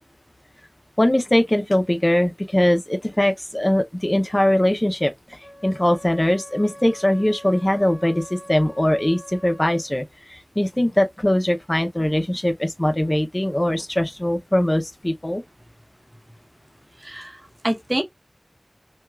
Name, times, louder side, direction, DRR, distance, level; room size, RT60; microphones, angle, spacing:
voice 1, 1.0-5.1 5.6-8.2 8.5-10.0 10.6-15.4, left 1 dB, 30° left, 0.7 m, -21 dB
Wind instrument woodwind instrument, 5.4-9.9, equal, 15° left, 2.4 m, -43 dB
voice 2, 17.0-18.0, right 1 dB, 45° right, 1.0 m, -27 dB
6.2 x 2.3 x 2.4 m
wide cardioid pair, 40°, 0 cm